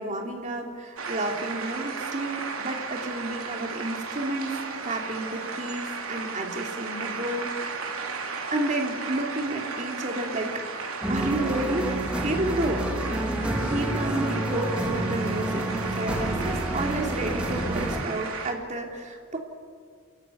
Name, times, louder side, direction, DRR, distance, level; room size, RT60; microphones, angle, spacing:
voice 1, 0.0-7.7 8.5-10.6 11.1-11.9 12.2-12.9 13.6-19.4, right 1 dB, 35° right, 2 dB, 3.1 m, -31 dB
sound 1, 1.0-18.5, right 4 dB, 85° right, 2.9 m, -35 dB
sound 2, 11.0-18.0, right 1 dB, 5° right, 2.5 m, -29 dB
28.5 x 14.5 x 9.4 m, 2.3 s
head